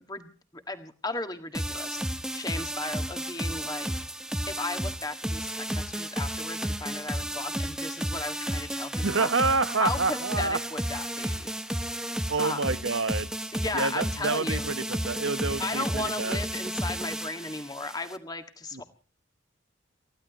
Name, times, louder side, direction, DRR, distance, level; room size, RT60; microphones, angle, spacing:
voice 1, 0.0-3.9 4.5-9.3 9.8-11.5 12.4-12.8 13.5-14.7 15.6-18.8, left 2 dB, 20° left, 6 dB, 1.8 m, -35 dB
sound 1, 1.5-18.2, equal, 5° right, 0.9 m, -32 dB
voice 2, 9.0-10.6 12.3-13.3 13.7-16.4 18.7-18.8, right 4 dB, 85° right, 12 dB, 1.2 m, -28 dB
29.5 x 15.0 x 3.0 m, 0.38 s
head